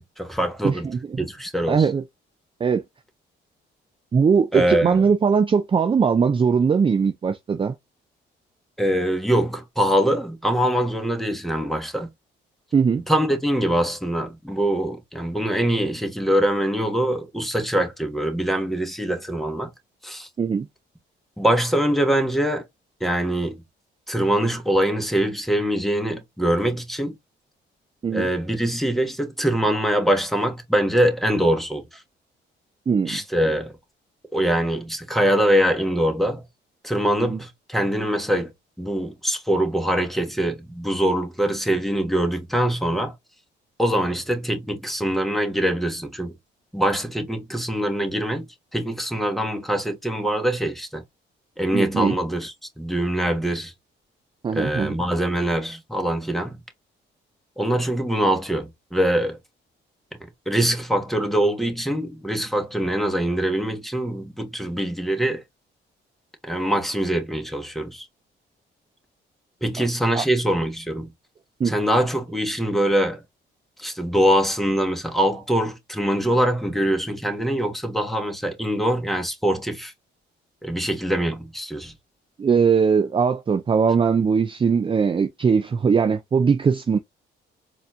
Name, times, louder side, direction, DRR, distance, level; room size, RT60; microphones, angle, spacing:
voice 1, 0.0-0.9 1.2-1.9 4.5-5.0 8.8-12.1 13.1-19.7 20.0-20.3 21.4-22.6 23.0-23.6 24.1-27.1 28.1-32.0 33.1-33.7 34.3-36.4 36.8-38.5 38.8-43.1 43.8-46.3 46.7-48.5 48.7-51.0 51.6-53.7 54.5-56.6 57.6-59.4 60.5-65.4 66.4-68.1 69.6-71.1 71.6-73.2 73.8-79.9 80.6-81.9, right 1 dB, ahead, 1.3 m, -23 dB
voice 2, 0.6-1.0 1.7-2.0 2.6-2.8 4.1-7.7 12.7-13.0 20.4-20.7 28.0-28.3 32.9-33.2 37.2-37.4 51.7-52.2 54.4-54.9 70.2-70.3 71.6-71.7 82.4-87.0, right 6 dB, 25° right, 0.4 m, -20 dB
4.1 x 2.8 x 2.6 m
cardioid pair, 90°, 20 cm